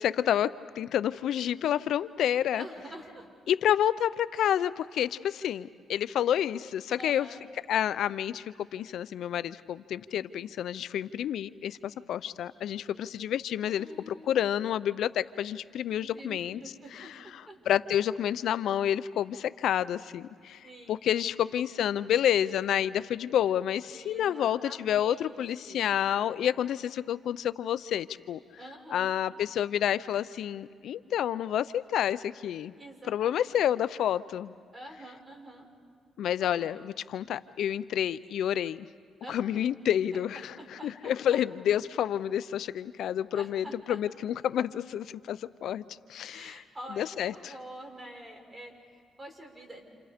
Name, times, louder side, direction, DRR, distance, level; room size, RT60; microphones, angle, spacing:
voice 1, 0.0-2.6 3.5-7.3 7.7-16.6 17.0-17.1 17.7-20.6 20.9-28.4 28.9-32.7 33.1-34.5 36.2-38.9 39.3-40.5 40.8-45.8 46.1-46.6 47.0-47.3, left 10 dB, 75° left, 15 dB, 0.5 m, -29 dB
voice 2, 2.5-3.3 7.0-7.4 13.7-14.4 16.1-17.6 20.6-21.0 21.3-21.6 23.9-25.9 28.6-29.1 32.8-33.6 34.7-35.7 36.4-36.9 39.2-39.6 40.1-41.5 43.3-44.0 46.3-49.8, right 1 dB, 20° right, 2 dB, 5.3 m, -47 dB
29.0 x 29.0 x 5.1 m, 2.2 s
cardioid pair, 90°, 0 cm